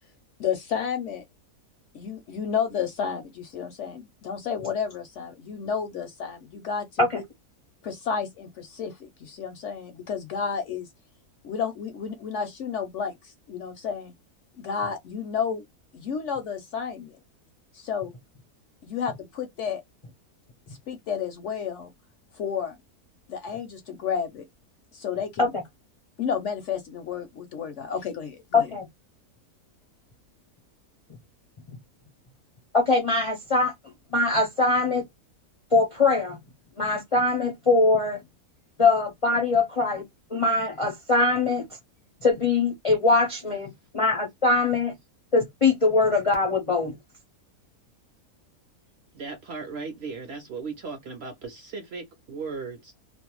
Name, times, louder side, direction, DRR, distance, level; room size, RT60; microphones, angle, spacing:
voice 1, 0.4-1.2 1.9-7.2 7.8-10.9 11.4-14.1 14.6-15.6 15.9-17.2 17.7-18.1 18.8-19.8 20.9-21.9 22.3-22.8 23.3-24.4 24.9-25.5 26.2-28.7, left 7 dB, 65° left, 0.7 m, -31 dB
voice 2, 28.5-28.9 32.7-33.7 34.1-35.0 35.7-36.4 36.8-38.2 38.8-40.0 40.3-41.7 42.2-44.9 45.3-47.0, left 3 dB, 50° left, 0.4 m, -22 dB
voice 3, 49.1-52.9, right 4 dB, 60° right, 0.7 m, -37 dB
2.5 x 2.1 x 2.9 m
omnidirectional pair, 1.6 m